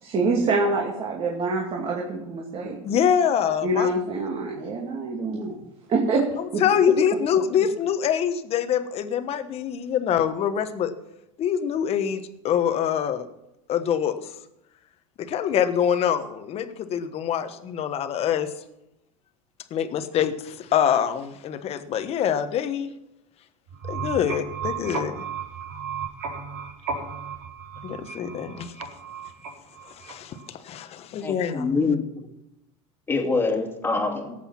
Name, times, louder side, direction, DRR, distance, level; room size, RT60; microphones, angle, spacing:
voice 1, 0.0-2.8 3.6-5.6 5.9-6.2 6.5-6.6, right 3 dB, 35° right, -1 dB, 2.5 m, -25 dB
voice 2, 2.8-3.9 6.6-10.9 11.4-13.3 13.7-14.3 15.2-18.5 19.7-22.9 23.8-25.1 27.8-28.7 29.8-31.9, left 8 dB, 40° left, 10 dB, 1.2 m, -25 dB
sound 1, 23.7-30.5, right 5 dB, 85° right, 4.7 m, -34 dB
voice 3, 31.2-32.0 33.1-34.3, left 4 dB, 15° left, 3 dB, 2.4 m, -25 dB
18.0 x 8.1 x 5.9 m, 0.87 s
supercardioid pair, 130°, 17 cm